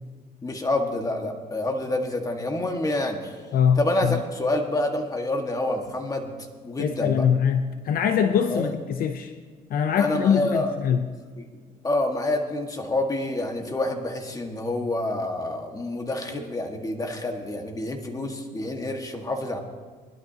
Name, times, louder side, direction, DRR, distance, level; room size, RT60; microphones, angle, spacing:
voice 1, 0.4-3.3 3.8-6.3 6.6-7.3 8.5-8.7 10.0-10.7 11.4-11.5 11.8-19.6, left 1 dB, 20° left, 3 dB, 1.7 m, -27 dB
voice 2, 3.5-4.2 6.8-9.3 9.7-11.0, left 7 dB, 60° left, 7 dB, 0.7 m, -23 dB
21.5 x 12.0 x 2.9 m, 1.5 s
cardioid pair, 110°, 17 cm